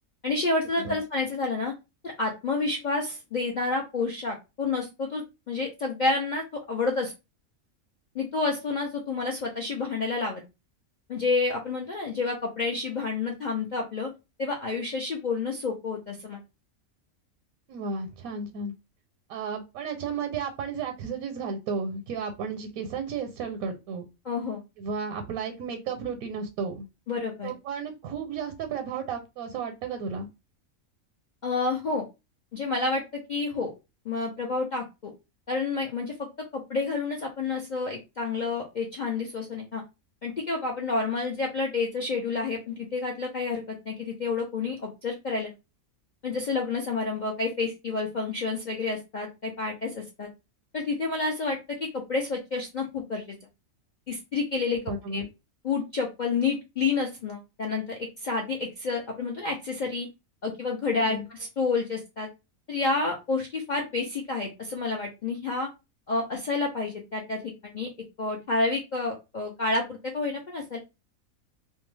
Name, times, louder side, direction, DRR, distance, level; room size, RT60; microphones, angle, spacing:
voice 1, 0.2-1.7 2.0-7.1 8.1-10.4 11.1-14.1 14.4-16.4 24.3-24.6 27.1-27.5 31.4-32.0 32.5-33.0 33.3-33.7 34.1-35.1 35.5-36.3 36.5-39.8 40.2-45.5 46.2-50.3 50.7-53.2 54.1-54.8 55.1-55.2 55.6-60.1 60.4-62.3 62.7-65.7 66.1-67.9 68.2-70.8, left 3 dB, 70° left, 0 dB, 0.4 m, -29 dB
voice 2, 17.7-18.7 19.3-24.1 24.8-26.8 27.4-30.3 54.7-55.3 60.9-61.3, right 5 dB, 85° right, 5 dB, 1.0 m, -33 dB
2.6 x 2.2 x 3.1 m, 0.26 s
omnidirectional pair, 1.5 m